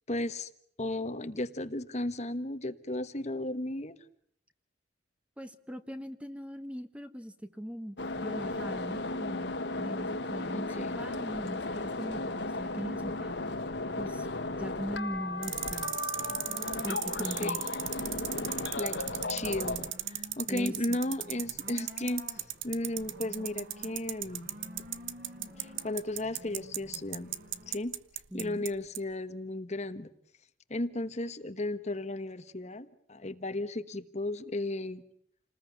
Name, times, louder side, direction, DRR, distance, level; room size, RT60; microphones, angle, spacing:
voice 1, 0.1-0.5 0.8-4.0 10.5-11.0 17.4-17.6 18.7-19.0 19.3-24.5 25.5-27.4 27.7-27.9 28.3-30.1 30.7-35.0, left 1 dB, 35° left, 11 dB, 1.3 m, -35 dB
voice 2, 5.4-13.3 14.0-14.3 14.6-16.1 16.8-17.6 20.5-21.0 28.3-28.6, equal, 5° right, 10 dB, 1.4 m, -40 dB
sound 1, 8.0-19.9, left 2 dB, 60° left, 1.7 m, -35 dB
sound 2, 12.6-27.8, left 1 dB, 50° right, 6.3 m, -51 dB
sound 3, 15.4-28.7 28.9-29.0, right 14 dB, 85° right, 1.2 m, -35 dB
29.0 x 20.0 x 9.5 m, 0.67 s
head